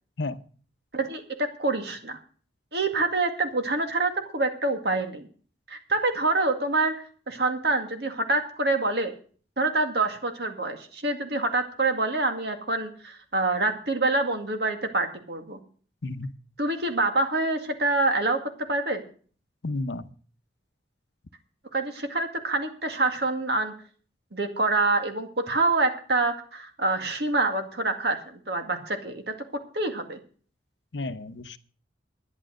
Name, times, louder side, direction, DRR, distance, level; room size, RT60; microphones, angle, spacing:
voice 1, 0.9-2.2 2.7-5.2 5.7-6.9 7.3-9.1 9.6-15.6 16.6-18.4 18.7-19.0 21.7-23.7 24.3-30.2, right 2 dB, 60° right, 6 dB, 2.1 m, -26 dB
voice 2, 19.6-20.1 30.9-31.6, left 2 dB, 75° left, 12 dB, 0.8 m, -32 dB
11.5 x 10.5 x 6.3 m, 0.42 s
head